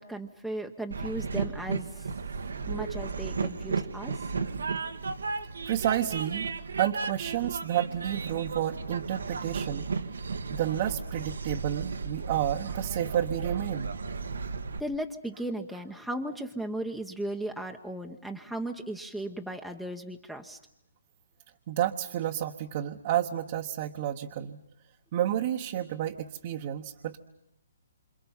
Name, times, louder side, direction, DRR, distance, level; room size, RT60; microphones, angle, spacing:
voice 1, 0.0-2.1 2.7-4.1 14.8-20.6, right 1 dB, ahead, 5 dB, 1.0 m, -36 dB
Train, 0.9-14.8, right 4 dB, 90° right, 1.6 m, -34 dB
voice 2, 5.6-6.5 6.8-9.9 10.5-13.9 21.7-24.6 25.1-27.2, right 11 dB, 35° right, 3 dB, 1.2 m, -30 dB
28.0 x 27.0 x 5.7 m, 0.77 s
hypercardioid pair, 160°, 0 cm